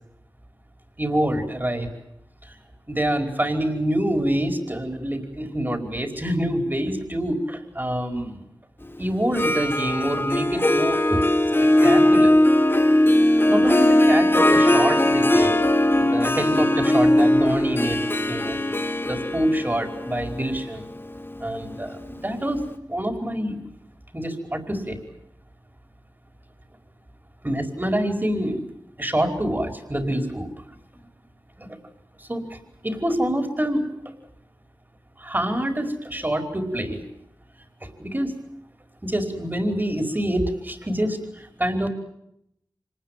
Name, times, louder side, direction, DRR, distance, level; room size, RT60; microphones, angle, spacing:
voice 1, 1.0-1.9 2.4-2.5 2.9-8.4 9.0-11.3 11.6-12.4 13.5-15.6 16.1-18.6 19.1-20.9 21.4-22.6 22.9-23.6 24.1-25.0 27.4-28.6 29.0-30.5 31.6-31.8 32.2-33.9 35.2-37.0 37.8-38.3 39.0-41.9, right 1 dB, 25° right, 5 dB, 5.1 m, -26 dB
Harp, 9.2-22.1, left 1 dB, 30° left, 2.5 m, -19 dB
26.0 x 19.5 x 9.3 m, 0.76 s
cardioid pair, 40°, 8 cm